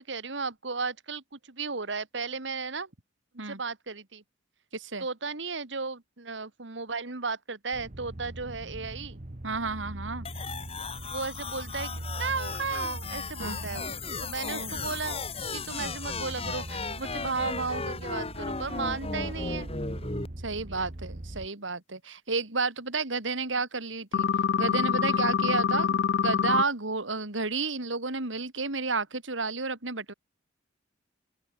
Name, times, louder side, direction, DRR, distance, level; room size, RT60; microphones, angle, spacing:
voice 1, 0.0-2.9 3.3-4.2 5.0-9.2 11.1-11.9 12.2-15.2 15.5-19.7 20.7-20.8 25.0-25.3, right 4 dB, 70° right, 1.8 m, -35 dB
voice 2, 4.7-5.0 9.4-10.3 13.4-13.6 14.4-14.7 20.4-24.3 24.6-30.1, right 4 dB, 90° right, 3.3 m, -31 dB
sound 1, 7.7-21.5, right 1 dB, 40° right, 1.2 m, -41 dB
sound 2, 10.3-20.3, left 4 dB, 30° left, 2.5 m, -36 dB
sound 3, 24.1-26.6, left 7 dB, 90° left, 0.4 m, -25 dB
open air
head